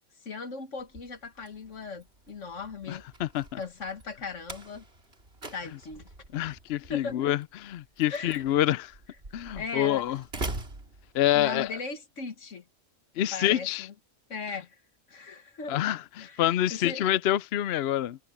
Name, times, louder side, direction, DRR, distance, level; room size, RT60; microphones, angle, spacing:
voice 1, 0.2-3.0 3.6-4.8 5.5-6.1 6.9-7.2 8.1-8.4 9.6-10.1 11.3-12.7 13.3-13.9 14.3-14.8 15.1-15.8 16.2-17.0, left 4 dB, 85° left, 2.0 m, -38 dB
Slam, 0.8-11.7, right 2 dB, 55° right, 3.5 m, -44 dB
voice 2, 2.9-3.6 6.3-8.9 9.3-10.2 11.1-11.7 13.2-13.9 15.7-18.2, left 12 dB, 65° left, 0.7 m, -27 dB
omnidirectional pair, 1.3 m